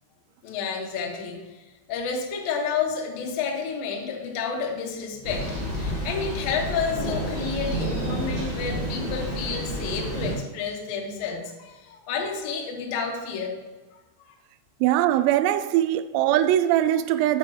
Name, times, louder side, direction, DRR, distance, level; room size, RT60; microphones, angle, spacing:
voice 1, 0.4-1.4 1.9-13.5, left 6 dB, 85° left, 2.0 m, -30 dB
Thunder, 5.2-10.3, right 1 dB, 70° right, 0.7 m, -30 dB
voice 2, 14.8-17.4, right 12 dB, 90° right, 3.3 m, -21 dB
8.7 x 8.3 x 3.2 m
omnidirectional pair, 6.0 m